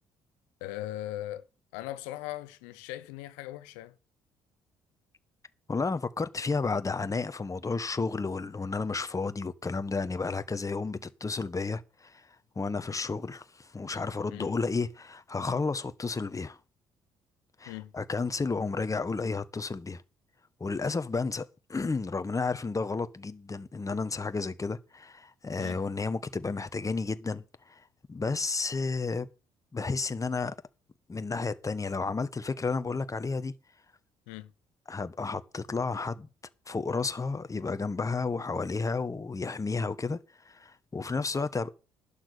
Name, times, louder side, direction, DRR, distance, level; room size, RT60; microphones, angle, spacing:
voice 1, 0.6-1.5 1.7-3.9 14.3-14.5 17.7-17.9 25.6-25.8 34.3-34.5, left 14 dB, 80° left, 0.8 m, -39 dB
voice 2, 5.7-12.3 12.5-16.6 17.6-20.0 20.6-29.3 29.7-30.5 31.1-33.5 34.9-36.3 36.7-40.2 40.4-41.7, left 4 dB, 25° left, 1.4 m, -32 dB
11.5 x 8.7 x 6.7 m
hypercardioid pair, 55°, 13 cm